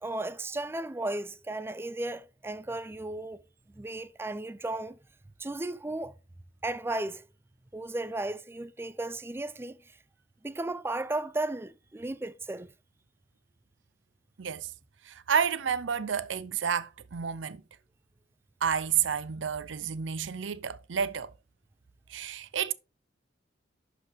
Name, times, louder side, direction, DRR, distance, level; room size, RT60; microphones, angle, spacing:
voice 1, 0.0-3.4 3.7-5.0 5.4-6.1 6.6-7.3 7.7-9.8 10.4-12.7, right 2 dB, 15° right, 0.4 m, -35 dB
voice 2, 14.4-14.7 15.1-17.6 18.6-21.3 22.1-22.7, right 7 dB, 75° right, 0.6 m, -30 dB
11.5 x 5.0 x 3.4 m
head